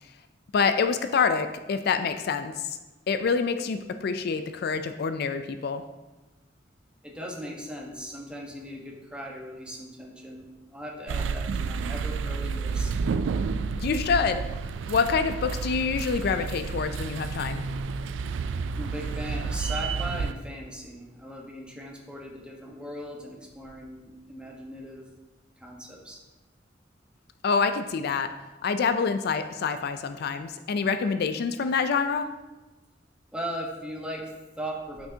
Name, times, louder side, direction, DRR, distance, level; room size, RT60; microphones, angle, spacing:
voice 1, 0.5-2.8 3.1-5.8 13.8-14.4 14.9-17.6 27.4-28.3 28.6-32.3, left 5 dB, 60° left, 9 dB, 0.4 m, -26 dB
voice 2, 7.0-12.9 18.7-25.1 25.6-26.2 33.3-35.1, equal, 5° right, -2 dB, 1.1 m, -38 dB
sound 1, 11.1-20.3, right 5 dB, 80° right, 0.3 m, -30 dB
8.9 x 5.9 x 2.8 m, 1.1 s
head